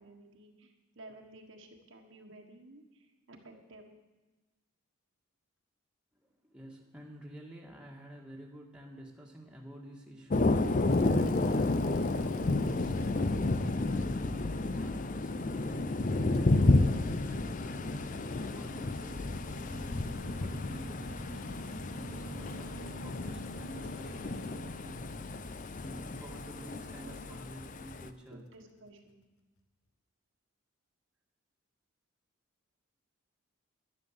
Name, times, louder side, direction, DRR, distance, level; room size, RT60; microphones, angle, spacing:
voice 1, 0.0-3.8 26.2-27.2 28.3-29.2, right 2 dB, 60° right, 3 dB, 1.5 m, -53 dB
voice 2, 6.4-21.4 21.9-25.1 25.8-28.4, right 1 dB, 5° right, -2 dB, 1.7 m, -50 dB
Thunder, 10.3-28.1, left 2 dB, 35° left, 0.5 m, -31 dB
sound 1, 10.9-15.1 16.3-27.5 29.1-29.2, equal, 75° left, 1.2 m, -49 dB
11.0 x 11.0 x 7.3 m, 1.2 s
head